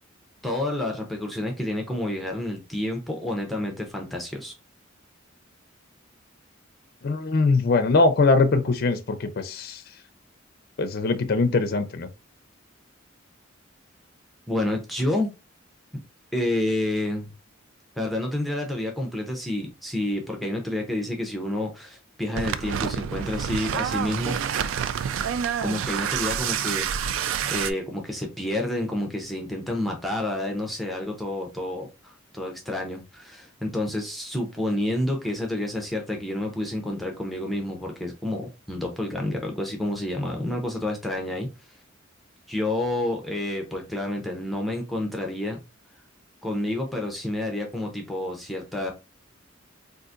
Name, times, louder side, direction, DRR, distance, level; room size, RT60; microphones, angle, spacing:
voice 1, 0.4-4.5 14.5-15.3 16.3-17.3 18.0-24.4 25.6-27.1 27.5-41.5 42.5-45.6 46.4-48.9, left 1 dB, ahead, 0.6 m, -29 dB
voice 2, 7.0-9.8 10.8-12.1, left 3 dB, 50° left, 0.4 m, -22 dB
sound 1, 22.4-27.7, right 8 dB, 70° right, 0.3 m, -28 dB
3.8 x 2.5 x 2.4 m
head